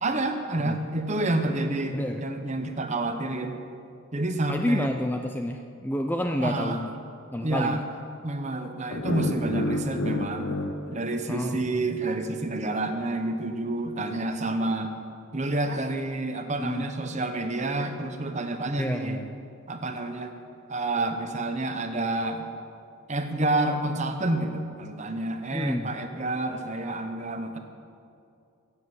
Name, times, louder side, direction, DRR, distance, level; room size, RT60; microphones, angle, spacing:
voice 1, 0.0-3.6 4.1-4.9 6.4-6.8 7.4-7.8 8.2-10.5 10.9-14.9 15.3-19.2 19.7-20.3 20.7-22.4 23.1-27.6, right 2 dB, 30° right, 6 dB, 0.9 m, -29 dB
voice 2, 1.9-2.2 4.5-6.9 7.3-7.8 11.3-11.6 16.6-16.9 18.8-19.3 25.5-25.9, left 1 dB, 10° left, 4 dB, 0.4 m, -29 dB
sound 1, 8.9-12.0, left 2 dB, 55° left, 0.9 m, -31 dB
15.0 x 7.3 x 8.1 m, 2.5 s
head